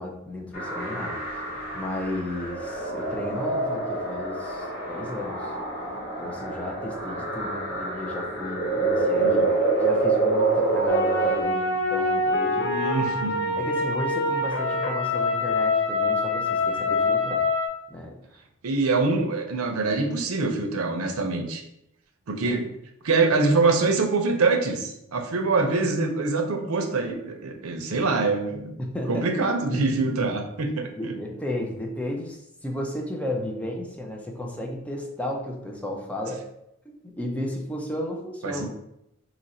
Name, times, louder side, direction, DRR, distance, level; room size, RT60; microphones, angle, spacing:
voice 1, 0.0-5.5 6.2-9.3 9.8-12.7 13.6-17.4 17.9-18.4 22.5-22.6 28.8-29.3 31.0-36.4 37.0-38.7, left 1 dB, 5° left, 0 dB, 0.5 m, -34 dB
sound 1, 0.5-11.4, right 3 dB, 45° left, 1.0 m, -27 dB
sound 2, 10.9-17.7, left 3 dB, 65° left, 0.6 m, -25 dB
voice 2, 12.6-13.6 18.6-21.6 22.3-22.7 23.0-28.7 29.1-30.9 38.4-38.7, right 3 dB, 80° right, 4 dB, 0.6 m, -24 dB
2.9 x 2.5 x 4.1 m, 0.81 s
head